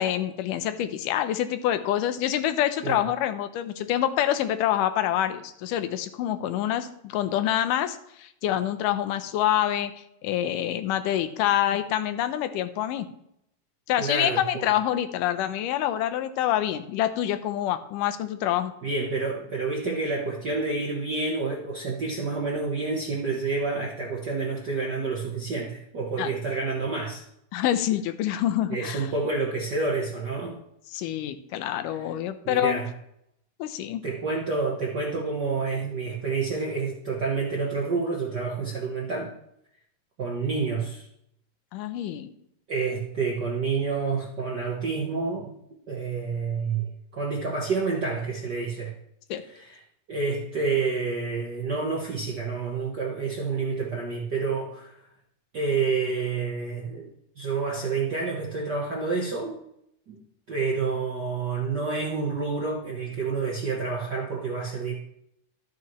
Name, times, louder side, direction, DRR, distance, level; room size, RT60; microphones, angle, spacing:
voice 1, 0.0-9.9 10.2-13.1 13.9-18.7 26.2-26.3 27.5-29.1 30.9-32.8 33.6-34.0 41.7-42.3 49.3-49.4, left 11 dB, 90° left, 10 dB, 2.3 m, -26 dB
voice 2, 14.0-14.7 18.8-27.2 28.7-30.6 31.9-32.1 32.4-32.9 34.0-39.3 40.2-41.1 42.7-45.5 45.9-48.9 49.4-49.8 50.1-55.0 55.5-57.1 57.4-59.6 60.1-60.2 60.5-64.9, right 4 dB, 60° right, -2 dB, 1.1 m, -29 dB
12.5 x 8.3 x 3.1 m, 0.76 s
omnidirectional pair, 3.7 m